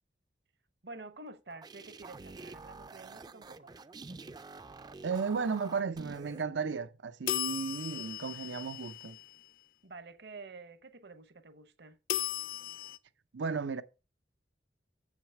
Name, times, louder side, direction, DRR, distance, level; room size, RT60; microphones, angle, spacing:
voice 1, 0.8-3.7 9.8-12.0, right 3 dB, 60° right, 1.0 m, -49 dB
sound 1, 1.3-6.4, right 3 dB, 20° right, 0.4 m, -48 dB
voice 2, 5.0-9.2 13.3-13.8, right 5 dB, 85° right, 0.6 m, -34 dB
sound 2, 7.3-9.5 12.1-13.0, left 11 dB, 50° left, 0.5 m, -36 dB
7.2 x 6.2 x 5.9 m
head